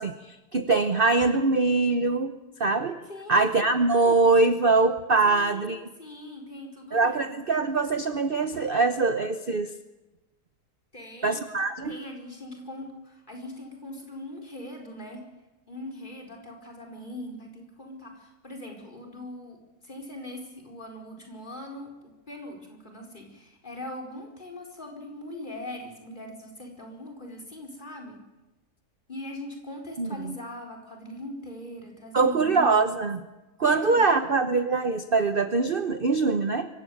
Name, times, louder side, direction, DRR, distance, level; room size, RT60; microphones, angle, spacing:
voice 1, 0.0-2.3 2.6-3.0 3.3-5.9 6.9-9.7 11.2-12.0 30.0-30.3 32.1-33.2 33.6-36.7, right 3 dB, 40° right, 9 dB, 1.0 m, -23 dB
voice 2, 3.1-3.8 5.2-7.2 10.9-11.5 11.9-15.2 15.7-28.2 29.1-32.7 33.7-34.2, left 1 dB, 30° left, 1 dB, 4.8 m, -41 dB
24.5 x 15.5 x 9.3 m, 1.0 s
omnidirectional pair, 1.7 m